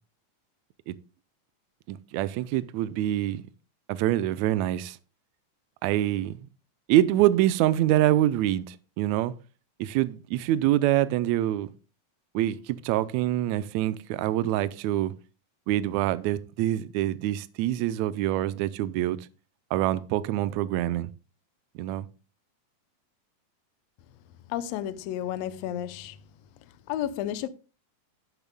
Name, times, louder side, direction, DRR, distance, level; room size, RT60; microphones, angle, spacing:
voice 1, 1.9-3.4 3.9-5.0 5.8-6.4 6.9-9.3 9.8-11.7 12.3-15.1 15.7-19.2 19.7-21.1 21.7-22.1, right 13 dB, 80° right, 1.7 m, -25 dB
voice 2, 24.5-26.2 26.9-27.5, left 11 dB, 75° left, 1.6 m, -32 dB
12.0 x 10.5 x 2.2 m
omnidirectional pair, 3.6 m